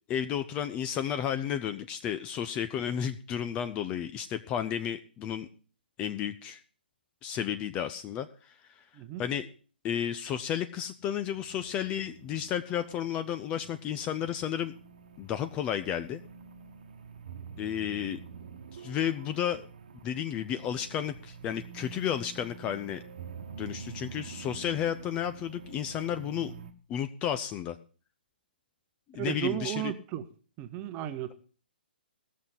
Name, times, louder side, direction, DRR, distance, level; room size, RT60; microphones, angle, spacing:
voice 1, 0.1-5.5 6.0-6.6 7.2-8.8 9.2-9.5 9.8-14.7 15.2-16.2 17.6-18.2 18.7-19.7 20.0-23.0 23.6-26.5 26.9-27.8 29.1-29.9, left 9 dB, 20° left, 10 dB, 0.5 m, -32 dB
sound 1, 11.0-26.7, right 6 dB, 50° right, 1.2 m, -47 dB
voice 2, 29.1-30.3 30.6-31.3, right 12 dB, 20° right, 10 dB, 0.9 m, -34 dB
17.0 x 6.5 x 5.5 m, 0.39 s
figure-of-eight pair, 130°, 6 cm